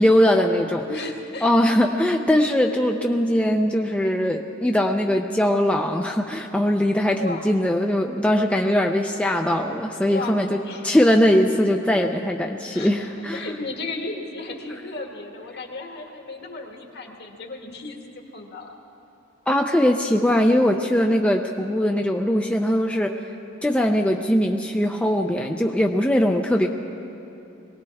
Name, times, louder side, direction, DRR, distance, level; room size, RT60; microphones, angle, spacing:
voice 1, 0.0-0.9 1.4-10.6 10.8-13.5 19.5-23.1 23.6-26.7, equal, 5° left, 2 dB, 0.5 m, -21 dB
voice 2, 0.9-1.5 7.2-7.5 10.1-10.9 12.7-18.8, left 2 dB, 55° left, 2 dB, 1.7 m, -35 dB
22.5 x 18.0 x 3.5 m, 2.9 s
head